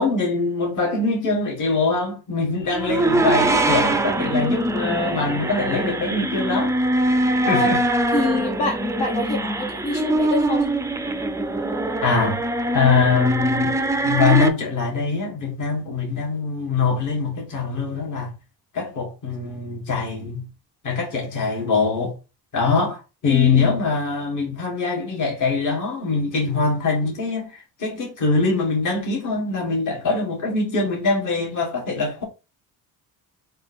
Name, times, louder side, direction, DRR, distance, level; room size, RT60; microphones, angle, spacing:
voice 1, 0.0-6.7 7.5-7.8 12.0-12.4 12.7-13.8 14.0-18.3 18.7-20.5 20.8-22.1 22.5-32.2, left 4 dB, 50° left, 2.0 m, -23 dB
sound 1, 2.7-14.5, right 1 dB, 10° right, 0.3 m, -22 dB
voice 2, 8.1-10.6 23.3-23.7, left 2 dB, 80° left, 1.9 m, -25 dB
3.7 x 2.8 x 4.3 m
cardioid pair, 140°, 38 cm